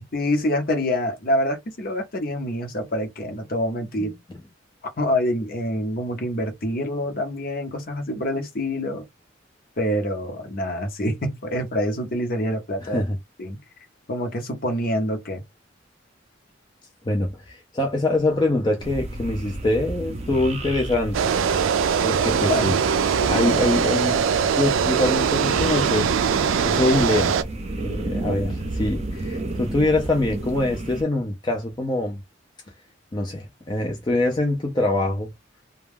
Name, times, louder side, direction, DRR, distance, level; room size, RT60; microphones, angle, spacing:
voice 1, 0.1-4.1 4.8-9.0 9.8-13.0 13.4-13.6 14.1-15.4 22.4-22.8 23.2-23.5, left 1 dB, 50° left, 0.8 m, -26 dB
voice 2, 12.8-13.2 17.0-21.3 22.0-22.8 23.3-24.3 24.6-26.4 26.6-27.4 27.8-32.2 33.1-35.3, left 2 dB, 20° left, 0.5 m, -24 dB
sound 1, 18.8-31.0, right 1 dB, 35° right, 0.6 m, -32 dB
sound 2, 21.1-27.4, right 7 dB, 85° right, 0.4 m, -21 dB
2.3 x 2.3 x 3.3 m
head